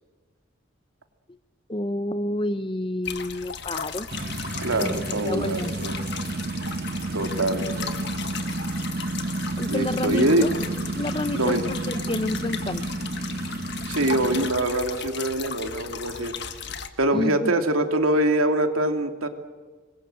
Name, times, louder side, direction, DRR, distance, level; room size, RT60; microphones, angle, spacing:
voice 1, 1.7-4.1 4.8-5.7 9.6-10.5 11.0-12.9 17.1-17.5, left 1 dB, 25° left, 13 dB, 0.7 m, -29 dB
sound 1, 3.0-16.9, left 7 dB, 55° left, 1.6 m, -36 dB
sound 2, 4.1-14.5, right 2 dB, 45° right, 1.0 m, -31 dB
voice 2, 4.6-6.0 7.1-8.0 9.6-10.5 11.3-11.6 13.9-16.3 17.0-19.3, right 1 dB, 85° right, 6 dB, 2.7 m, -24 dB
27.0 x 21.5 x 7.7 m, 1.4 s
head